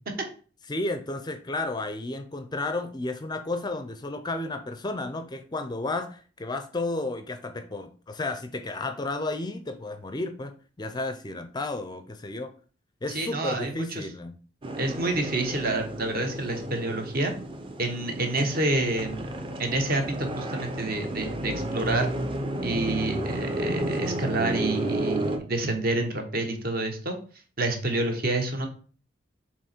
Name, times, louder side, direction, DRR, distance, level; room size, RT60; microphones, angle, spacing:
voice 1, 0.7-12.5 13.0-14.4, left 2 dB, 20° left, 9 dB, 0.4 m, -32 dB
voice 2, 13.1-14.1 14.8-17.3 17.8-19.2 19.6-22.1 22.6-27.2 27.6-28.7, right 2 dB, 50° right, 4 dB, 1.2 m, -28 dB
sound 1, 14.6-25.4, right 1 dB, 25° right, 0.7 m, -32 dB
7.3 x 3.0 x 4.3 m, 0.40 s
head